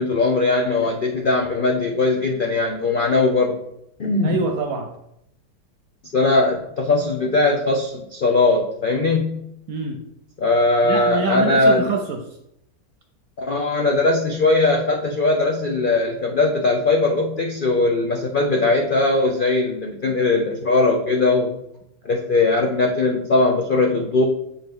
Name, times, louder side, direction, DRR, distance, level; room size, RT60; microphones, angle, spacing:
voice 1, 0.0-3.6 4.0-4.5 6.1-9.4 10.4-11.9 13.4-21.6 22.0-24.2, left 2 dB, 80° left, 1 dB, 0.4 m, -20 dB
voice 2, 4.2-4.9 9.7-10.0 10.8-12.2, right 4 dB, 70° right, 3 dB, 1.0 m, -25 dB
7.2 x 3.8 x 3.5 m, 0.78 s
omnidirectional pair, 1.8 m